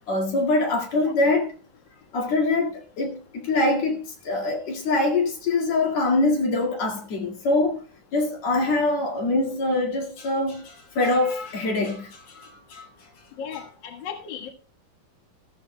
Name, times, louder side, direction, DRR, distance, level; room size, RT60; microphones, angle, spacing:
voice 1, 0.1-1.5 2.1-7.8 8.1-12.9 13.5-13.7, left 2 dB, 50° left, 2.8 m, -24 dB
voice 2, 13.4-14.5, left 7 dB, 65° left, 1.1 m, -36 dB
14.5 x 14.0 x 2.2 m
omnidirectional pair, 4.6 m